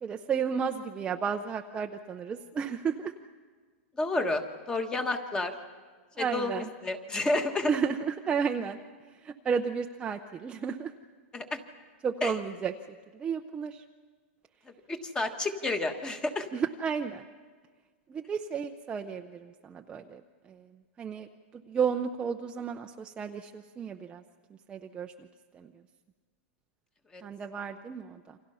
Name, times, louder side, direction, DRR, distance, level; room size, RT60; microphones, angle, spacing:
voice 1, 0.0-3.1 6.2-6.7 7.7-8.8 9.2-10.9 12.0-12.7 13.1-13.8 16.5-17.2 18.1-20.7 21.0-24.2 24.7-25.3 25.5-25.7 27.2-28.4, right 6 dB, 15° right, 4 dB, 0.7 m, -33 dB
voice 2, 3.9-5.5 6.2-7.7 11.3-11.6 12.2-12.4 14.6-16.5 27.1-27.2, left 2 dB, 10° left, 7 dB, 1.5 m, -30 dB
28.5 x 26.0 x 5.6 m, 1.5 s
supercardioid pair, 155°, 7 cm